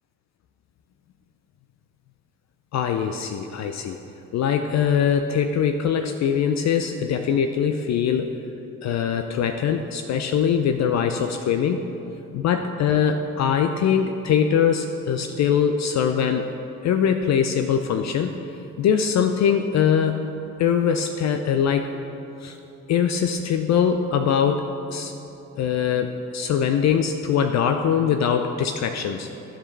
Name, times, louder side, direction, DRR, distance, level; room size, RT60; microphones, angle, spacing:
voice 1, 2.7-4.0 4.3-8.3 8.8-11.8 12.3-16.5 16.8-18.4 18.8-20.3 20.6-21.9 22.4-22.6 22.9-25.2 25.6-29.3, left 7 dB, 45° left, 7 dB, 0.4 m, -22 dB
12.0 x 5.1 x 3.2 m, 2.9 s
hypercardioid pair, 50°, 40 cm